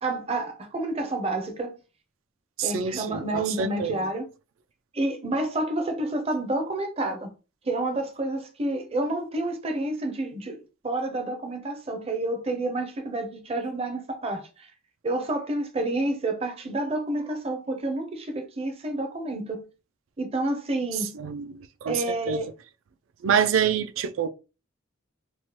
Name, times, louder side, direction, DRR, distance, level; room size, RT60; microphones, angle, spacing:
voice 1, 0.0-1.8 2.6-4.3 4.9-7.3 7.6-14.7 15.0-19.6 20.2-21.1 21.9-22.5, right 2 dB, 30° right, 0.5 m, -29 dB
voice 2, 2.6-4.0 21.1-22.4 23.2-24.3, right 7 dB, 85° right, 0.3 m, -26 dB
3.0 x 2.1 x 2.9 m
head